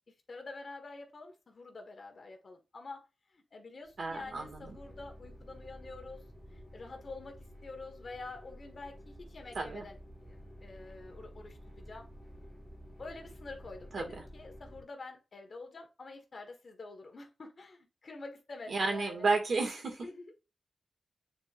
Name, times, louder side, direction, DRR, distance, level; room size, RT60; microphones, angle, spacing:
voice 1, 0.3-3.1 3.3-10.0 10.2-12.1 13.0-19.3 19.8-20.3, left 3 dB, 50° left, 1.5 m, -47 dB
sound 1, 3.9-14.8, equal, 5° left, 2.3 m, -51 dB
voice 2, 4.0-4.8 9.6-9.8 13.9-14.0 18.7-20.0, right 3 dB, 60° right, 2.1 m, -32 dB
8.8 x 4.4 x 2.5 m
wide cardioid pair, 115°, 0 cm